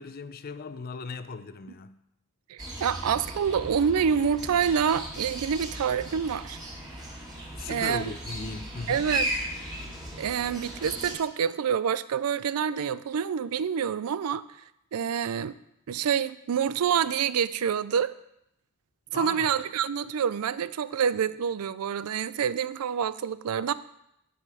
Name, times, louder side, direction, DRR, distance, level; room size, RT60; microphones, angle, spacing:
voice 1, 0.0-2.0 7.5-9.1 19.1-19.5, left 4 dB, 45° left, 0.5 m, -37 dB
voice 2, 2.5-6.6 7.7-8.1 8.9-9.3 10.2-14.4 14.9-15.5 15.9-18.1 19.1-23.7, right 7 dB, 80° right, 0.4 m, -27 dB
sound 1, 2.6-11.2, right 1 dB, 20° right, 2.0 m, -36 dB
12.0 x 5.3 x 4.8 m
head